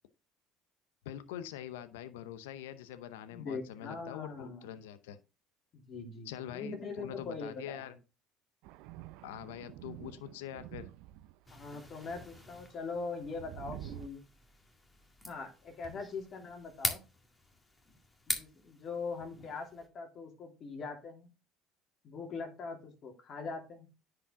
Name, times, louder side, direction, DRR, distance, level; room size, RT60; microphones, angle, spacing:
voice 1, 1.0-5.2 6.2-8.0 9.2-10.9 15.9-16.0, left 11 dB, 90° left, 13 dB, 0.7 m, -44 dB
voice 2, 3.3-4.6 5.7-7.8 11.5-14.2 15.3-17.0 18.3-21.3 22.0-23.9, left 4 dB, 50° left, 3 dB, 2.9 m, -42 dB
Thunder, 8.6-11.6 12.1-14.1, right 14 dB, 75° right, 0.5 m, -48 dB
sound 1, 11.5-19.9, left 2 dB, 20° left, 2.0 m, -43 dB
10.0 x 4.9 x 3.6 m, 0.30 s
supercardioid pair, 80°, 0 cm